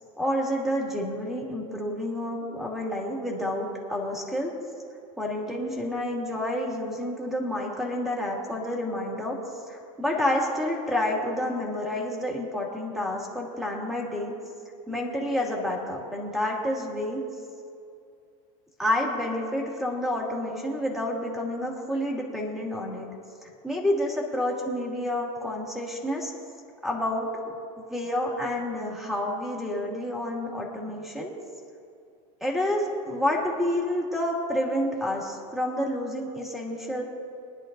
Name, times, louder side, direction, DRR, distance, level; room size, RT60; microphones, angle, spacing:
voice 1, 0.2-4.5 5.2-9.4 9.7-14.3 14.9-17.2 18.8-23.1 23.6-26.3 26.8-27.3 27.9-31.3 32.4-37.0, left 1 dB, ahead, -3 dB, 2.2 m, -29 dB
24.5 x 10.5 x 2.6 m, 2.4 s
supercardioid pair, 125°, 18 cm